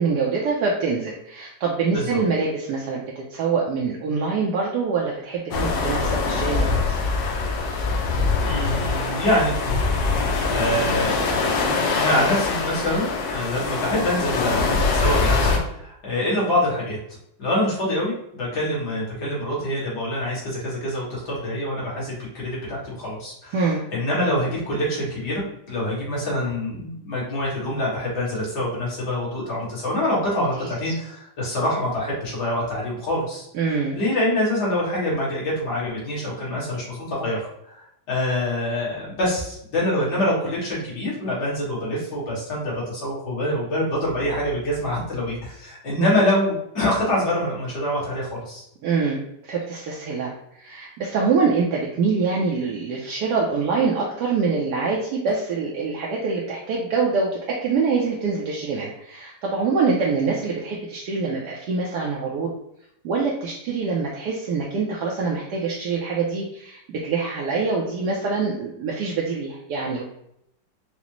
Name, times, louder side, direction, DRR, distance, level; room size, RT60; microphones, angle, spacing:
voice 1, 0.0-7.0 23.5-23.8 30.8-30.9 33.5-33.9 46.0-46.1 48.8-50.3 50.6-62.5 63.0-70.0, right 4 dB, 75° right, -3 dB, 1.1 m, -25 dB
sound 1, 5.5-15.6, left 4 dB, 80° left, 1.3 m, -23 dB
voice 2, 8.4-9.5 10.5-11.4 11.9-17.0 17.4-23.6 23.9-33.5 33.9-48.6, left 1 dB, 60° left, -6 dB, 2.0 m, -25 dB
5.0 x 2.0 x 3.0 m, 0.77 s
omnidirectional pair, 2.0 m